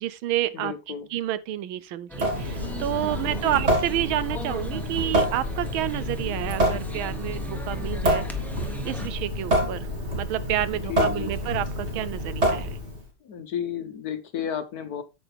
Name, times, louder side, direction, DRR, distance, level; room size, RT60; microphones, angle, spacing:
voice 1, 0.0-0.7 1.1-8.2 8.8-9.9 10.1-12.8, right 13 dB, 80° right, 1.4 m, -29 dB
voice 2, 0.5-1.1 3.4-3.6 10.7-11.6 13.2-15.0, left 9 dB, 55° left, 1.3 m, -33 dB
sound 1, 2.1-9.1, left 2 dB, ahead, 1.0 m, -38 dB
Water tap faucet / Sink (filling or washing) / Drip, 2.1-13.1, right 1 dB, 30° right, 3.0 m, -28 dB
9.0 x 7.9 x 3.4 m
omnidirectional pair, 2.3 m